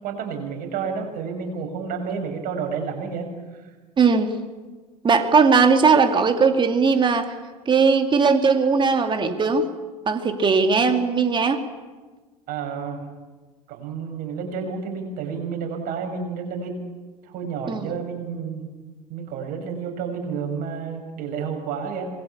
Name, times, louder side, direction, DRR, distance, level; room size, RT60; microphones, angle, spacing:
voice 1, 0.0-3.7 12.5-13.1 13.7-16.8 17.2-18.7 19.1-22.1, right 6 dB, 50° right, 4 dB, 6.8 m, -30 dB
voice 2, 4.0-4.3 5.0-7.3 7.7-9.7 10.1-11.6 17.7-17.9, right 5 dB, 25° right, 6 dB, 2.6 m, -18 dB
26.0 x 21.5 x 8.6 m, 1.3 s
figure-of-eight pair, 75°, 19 cm